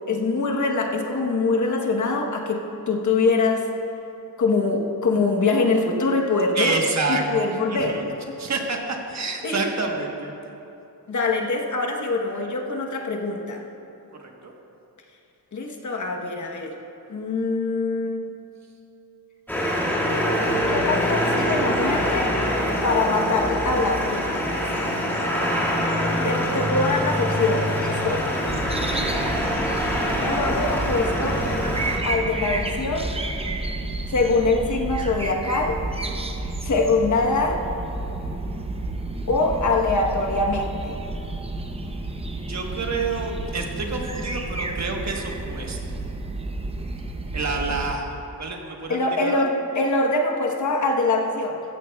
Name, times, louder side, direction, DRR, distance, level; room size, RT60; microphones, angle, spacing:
voice 1, 0.1-3.7 4.4-6.7 7.1-8.0 9.4-9.7 11.1-13.6 15.5-16.7 17.1-18.3 20.7-22.3 22.8-24.6 26.2-28.3 30.2-31.4 32.0-33.2 34.1-35.8 36.6-37.6 39.3-41.0 48.9-51.6, left 3 dB, 50° left, 1 dB, 1.1 m, -23 dB
voice 2, 6.5-8.1 8.4-10.3 14.4-14.5 28.9-29.1 42.5-46.0 47.3-49.4, right 3 dB, 45° right, 1 dB, 1.3 m, -28 dB
sound 1, 19.5-32.0, equal, 5° left, 1.9 m, -24 dB
sound 2, 28.5-48.0, right 2 dB, 15° right, 0.6 m, -31 dB
14.5 x 14.0 x 2.3 m, 2.9 s
wide cardioid pair, 135°, 38 cm